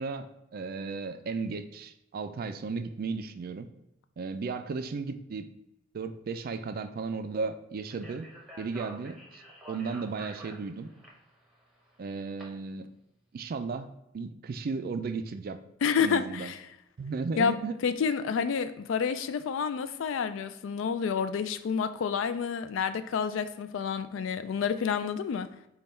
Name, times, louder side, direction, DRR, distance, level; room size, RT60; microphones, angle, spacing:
voice 1, 0.0-3.7 4.2-5.5 5.9-8.3 8.6-9.4 9.7-10.9 12.0-12.9 13.3-13.9 14.1-15.6 16.0-16.5 17.0-17.7, right 4 dB, 45° right, 0.3 m, -35 dB
Speech, 7.9-12.4, right 1 dB, ahead, 0.9 m, -48 dB
voice 2, 15.8-16.6 17.4-17.6 17.8-25.5, left 6 dB, 70° left, 0.3 m, -29 dB
5.2 x 2.3 x 4.2 m
head